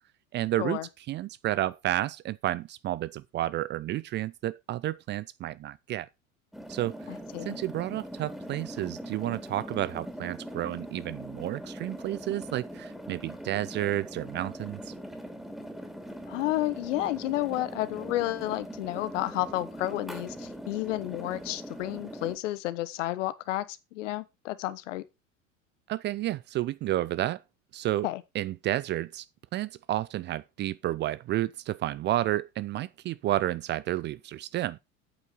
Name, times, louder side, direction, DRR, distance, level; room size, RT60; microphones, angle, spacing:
voice 1, 0.3-0.8 1.1-6.1 6.7-7.0 7.5-14.9 25.9-27.4 27.7-28.1 28.3-29.3 29.5-34.8, right 14 dB, 30° right, 0.4 m, -31 dB
sound 1, 6.5-22.4, equal, ahead, 2.8 m, -41 dB
voice 2, 7.1-7.6 16.3-25.0 28.0-28.2, left 16 dB, 60° left, 1.1 m, -31 dB
8.7 x 8.2 x 4.4 m
figure-of-eight pair, 75°, 40 cm